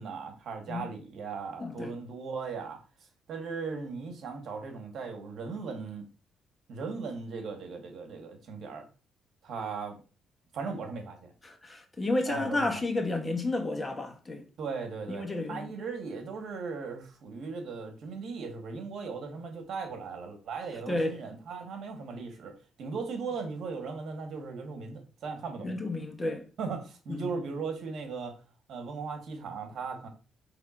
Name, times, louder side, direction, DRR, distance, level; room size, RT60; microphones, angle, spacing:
voice 1, 0.0-2.8 3.3-6.1 6.7-8.9 9.4-10.0 10.5-11.3 12.3-12.8 14.6-25.8 26.6-28.3 28.7-30.1, right 4 dB, 70° right, 1.2 m, -38 dB
voice 2, 1.6-1.9 11.4-14.4 15.1-15.7 20.9-21.1 25.6-26.4 27.1-27.4, left 2 dB, 25° left, 0.8 m, -31 dB
5.4 x 3.2 x 2.4 m
cardioid pair, 90°, 0 cm